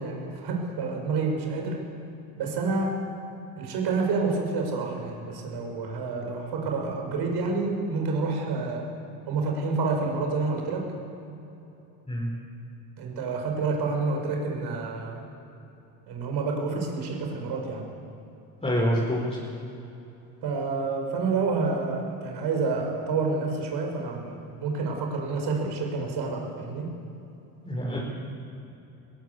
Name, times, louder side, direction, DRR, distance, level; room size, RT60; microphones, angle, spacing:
voice 1, 0.0-1.8 2.4-3.0 3.6-8.9 9.3-10.9 13.0-15.2 16.1-17.9 20.4-26.9, right 4 dB, 60° right, 2 dB, 5.7 m, -28 dB
voice 2, 18.6-19.2 27.6-28.0, equal, 15° left, -5 dB, 5.2 m, -26 dB
20.5 x 18.0 x 8.2 m, 2.9 s
supercardioid pair, 100°, 43 cm